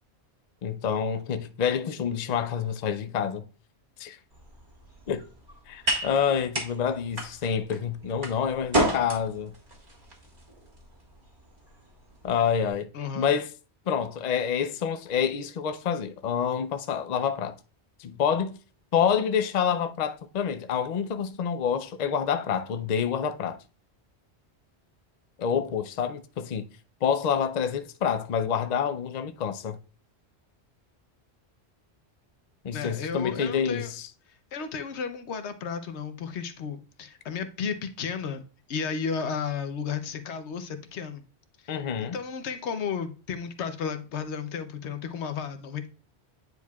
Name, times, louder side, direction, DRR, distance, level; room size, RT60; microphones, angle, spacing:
voice 1, 0.6-3.5 4.0-4.2 5.1-5.3 5.7-9.5 12.2-12.9 13.1-13.5 13.9-17.6 18.0-18.6 18.9-23.6 25.4-26.7 27.0-29.8 32.6-33.9 41.7-42.2, left 7 dB, 50° left, 0.5 m, -27 dB
sound 1, 4.3-12.7, right 1 dB, 40° right, 1.7 m, -33 dB
voice 2, 12.9-13.3 32.7-33.9 34.5-38.4 38.7-41.2 41.6-45.9, left 6 dB, 80° left, 1.0 m, -33 dB
9.6 x 4.6 x 2.3 m
omnidirectional pair, 1.1 m